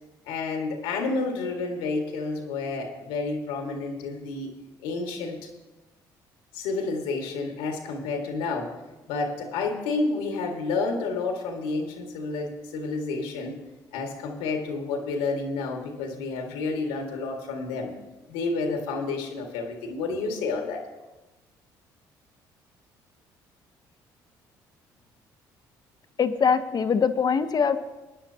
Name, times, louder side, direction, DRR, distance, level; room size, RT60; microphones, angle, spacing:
voice 1, 0.3-4.5 4.8-5.4 6.5-8.7 9.1-13.6 13.9-18.0 18.3-20.8, left 3 dB, 85° left, 3 dB, 1.9 m, -30 dB
voice 2, 26.2-27.8, left 6 dB, 45° left, 10 dB, 0.9 m, -22 dB
20.0 x 9.9 x 2.9 m, 1.1 s
supercardioid pair, 65°, 9 cm